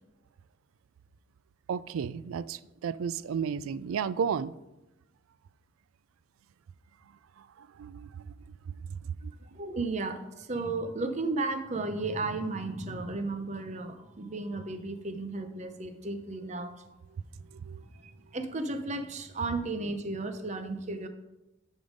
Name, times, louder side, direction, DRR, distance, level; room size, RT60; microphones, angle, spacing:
voice 1, 1.7-4.5 7.6-8.3 8.9-9.3 17.6-17.8, right 7 dB, 90° right, 17 dB, 0.3 m, -33 dB
voice 2, 9.4-17.0 17.4-17.5 17.9-21.1, right 3 dB, 35° right, 8 dB, 0.7 m, -34 dB
10.5 x 3.7 x 5.1 m, 0.95 s
head